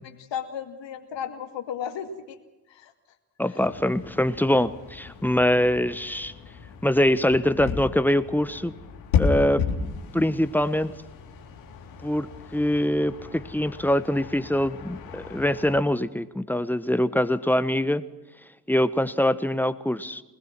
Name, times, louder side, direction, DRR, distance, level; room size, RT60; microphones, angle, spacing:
voice 1, 0.0-2.4 2.7-2.9 3.5-3.6, left 8 dB, 60° left, 6 dB, 2.4 m, -35 dB
voice 2, 3.4-6.3 6.8-8.7 9.2-9.7 10.1-10.9 12.0-18.0 18.7-20.2, left 1 dB, 5° left, 14 dB, 1.3 m, -23 dB
sound 1, 3.6-15.8, left 5 dB, 85° left, 3.0 m, -34 dB
24.0 x 20.5 x 6.2 m, 1.1 s
hypercardioid pair, 45°, 49 cm